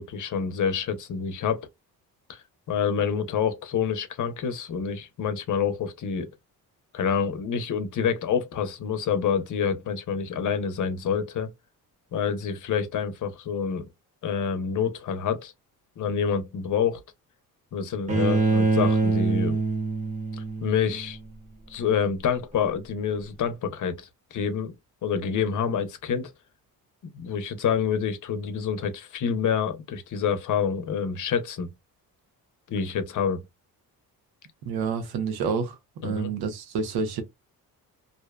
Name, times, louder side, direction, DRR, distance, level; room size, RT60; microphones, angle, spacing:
voice 1, 0.0-1.7 2.3-6.3 6.9-11.5 12.1-13.9 14.2-15.5 16.0-17.0 17.7-19.6 20.4-21.2 21.7-24.7 25.0-26.3 27.1-31.7 32.7-33.4 36.0-36.3, left 7 dB, 55° left, 0.7 m, -27 dB
Bowed string instrument, 18.1-21.1, right 3 dB, 20° right, 1.0 m, -24 dB
voice 2, 34.7-35.7 36.0-37.2, right 5 dB, 90° right, 0.8 m, -28 dB
2.6 x 2.1 x 2.3 m
cardioid pair, 105°, 36 cm